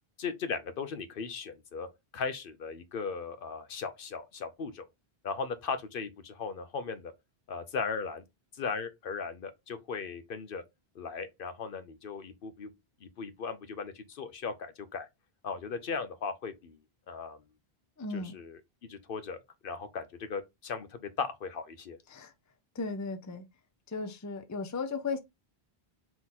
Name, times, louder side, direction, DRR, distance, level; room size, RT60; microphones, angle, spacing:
voice 1, 0.2-1.9 2.1-4.9 5.2-7.1 7.5-8.2 8.5-10.6 10.9-12.7 13.0-15.1 15.4-16.8 17.1-17.4 18.1-18.6 18.9-19.4 19.6-22.0, left 5 dB, 65° left, 0.8 m, -37 dB
voice 2, 18.0-18.3 22.1-22.3 22.7-23.5 23.9-25.2, left 4 dB, 20° left, 0.5 m, -35 dB
3.8 x 3.0 x 3.9 m
omnidirectional pair, 1.1 m